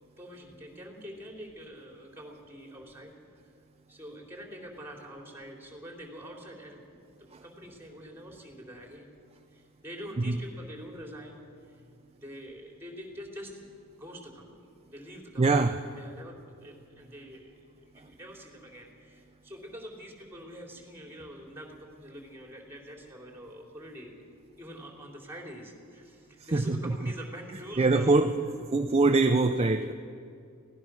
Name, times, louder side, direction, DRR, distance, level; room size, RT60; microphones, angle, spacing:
voice 1, 0.0-3.1 3.9-7.0 7.4-9.1 9.5-11.4 11.6-11.8 12.1-13.6 14.0-15.7 16.0-24.2 24.6-28.2, equal, 10° right, 0 dB, 3.7 m, -45 dB
voice 2, 15.4-15.8 26.4-27.1 27.8-28.4 28.7-29.9, right 3 dB, 30° right, 6 dB, 0.6 m, -24 dB
24.0 x 17.5 x 6.3 m, 2.4 s
head